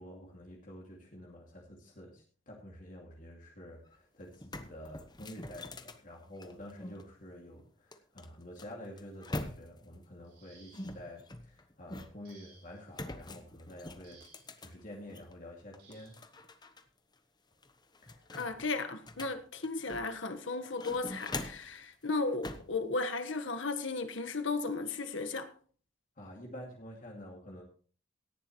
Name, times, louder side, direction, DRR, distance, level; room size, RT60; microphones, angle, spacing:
voice 1, 0.0-14.4 14.6-16.2 18.0-18.3 26.2-27.6, left 1 dB, 40° left, 2.5 m, -49 dB
sound 1, 3.9-4.0 4.3-7.0 7.9-9.9 10.7-12.3 12.9-15.3 15.7-16.8 17.1-17.2 17.6-20.2 20.6-21.8 22.4-22.8, left 2 dB, 20° left, 0.9 m, -44 dB
sound 2, 10.2-11.1 12.2-12.9 14.0-14.6 15.8-16.3 17.5-17.6 18.1-18.3, right 4 dB, 55° right, 6.4 m, -61 dB
voice 2, 18.3-25.5, left 3 dB, 70° left, 1.4 m, -35 dB
17.5 x 11.0 x 3.1 m
head